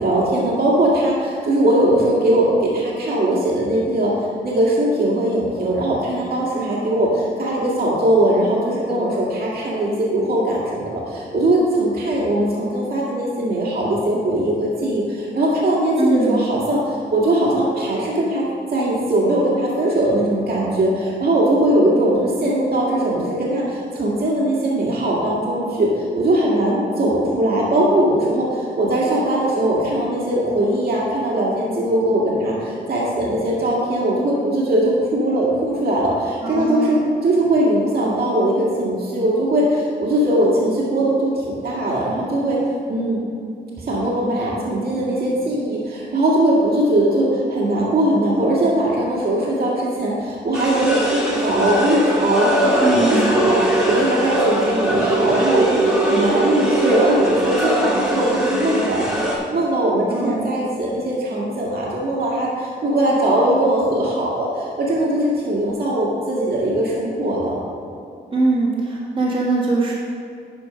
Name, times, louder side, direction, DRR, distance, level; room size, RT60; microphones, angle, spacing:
voice 1, 0.0-4.1 4.4-18.4 18.7-42.6 42.9-43.2 43.8-67.6, right 1 dB, 60° right, -5 dB, 1.9 m, -20 dB
voice 2, 16.0-16.5 36.4-37.1 52.8-53.4 60.1-60.5 68.3-69.9, right 2 dB, 30° right, -6 dB, 1.5 m, -21 dB
sound 1, 50.5-59.4, right 1 dB, 5° right, 1.9 m, -21 dB
11.5 x 4.6 x 5.1 m, 2.6 s
wide cardioid pair, 115°, 18 cm